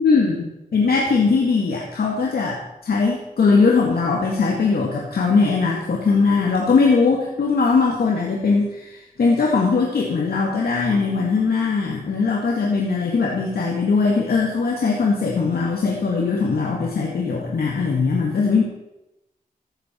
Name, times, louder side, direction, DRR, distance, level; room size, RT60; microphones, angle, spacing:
voice 1, 0.0-18.6, left 4 dB, 85° left, -2 dB, 2.0 m, -20 dB
14.5 x 12.0 x 4.5 m, 0.92 s
wide cardioid pair, 80°, 16 cm